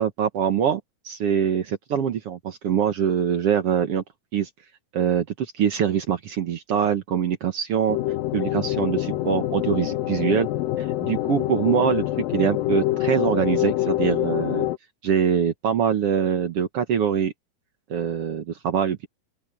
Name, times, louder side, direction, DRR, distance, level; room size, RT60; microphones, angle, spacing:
voice 1, 0.0-4.0 4.3-4.5 4.9-8.0 8.3-10.5 10.8-12.0 12.3-14.7 15.0-17.3 17.9-19.1, right 8 dB, 65° right, 1.4 m, -24 dB
sound 1, 7.9-14.8, left 15 dB, 75° left, 2.6 m, -25 dB
open air
omnidirectional pair, 4.3 m